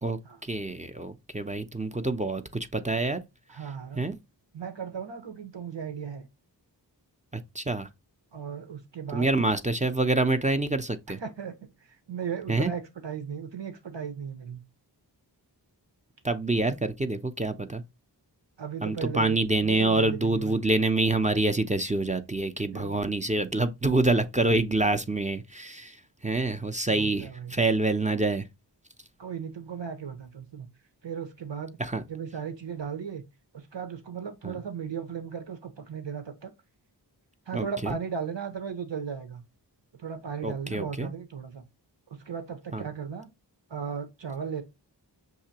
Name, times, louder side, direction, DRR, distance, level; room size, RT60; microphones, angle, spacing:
voice 1, 0.0-3.2 3.9-4.2 7.3-7.9 9.1-11.2 12.5-12.7 16.2-17.8 18.8-26.0 26.2-28.5 31.8-32.0 34.4-34.6 37.5-37.7 40.4-41.1 42.7-42.8, right 2 dB, 15° right, 0.6 m, -26 dB
voice 2, 3.5-4.0 4.5-6.3 8.3-9.4 11.2-14.6 18.6-20.6 22.7-23.0 26.9-27.5 29.2-30.7 31.0-31.8 32.1-33.2 33.5-36.5 37.5-39.4 39.9-41.6 42.1-43.3 43.7-44.6, right 7 dB, 85° right, 1.2 m, -36 dB
6.6 x 2.8 x 2.8 m
wide cardioid pair, 70°, 43 cm